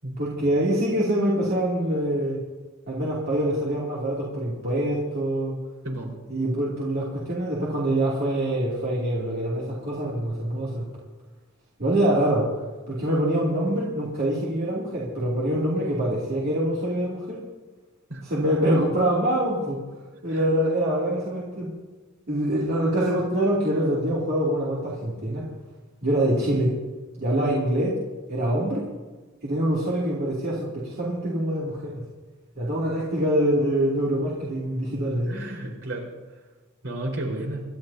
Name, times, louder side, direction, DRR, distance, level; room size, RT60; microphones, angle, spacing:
voice 1, 0.2-2.4 2.9-5.6 6.3-10.8 11.8-12.5 12.9-17.4 18.2-19.8 20.2-21.7 22.3-25.5 26.0-26.7 27.2-28.0 28.3-28.8 29.4-31.9 32.6-35.3, right 1 dB, 50° right, -6 dB, 3.0 m, -25 dB
voice 2, 35.3-36.1 36.8-37.6, right 1 dB, 65° right, -2 dB, 4.9 m, -32 dB
27.0 x 13.0 x 2.9 m, 1.3 s
head